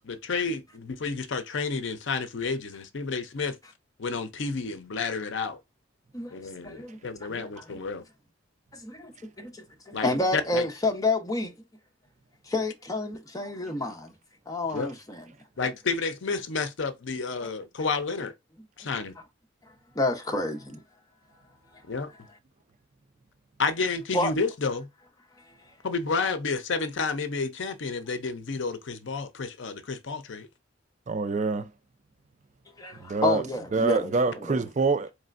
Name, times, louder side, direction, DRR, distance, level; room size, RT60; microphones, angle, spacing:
voice 1, 0.0-3.6 4.0-5.6 6.3-8.0 9.9-10.7 14.7-14.9 15.6-18.3 18.8-19.1 21.9-22.1 23.6-24.9 25.8-30.5, left 4 dB, 60° left, 0.6 m, -30 dB
voice 2, 6.6-7.0 7.3-7.9 8.7-9.1 9.4-11.5 12.5-14.1 14.5-15.2 17.4-17.5 18.8-19.0 19.9-20.8 24.1-24.3 32.8-34.1 34.4-34.6, left 2 dB, 15° left, 0.7 m, -29 dB
voice 3, 31.1-31.7 33.0-33.4 33.7-35.1, right 4 dB, 35° right, 0.4 m, -26 dB
4.2 x 3.2 x 2.5 m
head